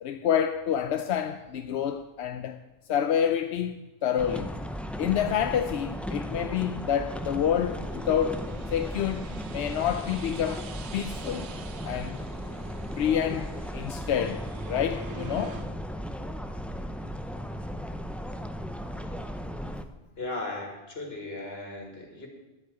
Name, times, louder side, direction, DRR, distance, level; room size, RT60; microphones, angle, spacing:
voice 1, 0.0-2.6 2.9-4.5 5.0-11.5 11.8-12.2 13.0-15.6, left 9 dB, 85° left, 0.9 m, -28 dB
sound 1, 4.2-19.8, equal, ahead, 0.5 m, -36 dB
sound 2, 5.6-15.7, right 8 dB, 90° right, 1.0 m, -47 dB
voice 2, 20.2-22.3, left 2 dB, 70° left, 2.8 m, -36 dB
10.5 x 8.4 x 9.0 m
omnidirectional pair, 1.1 m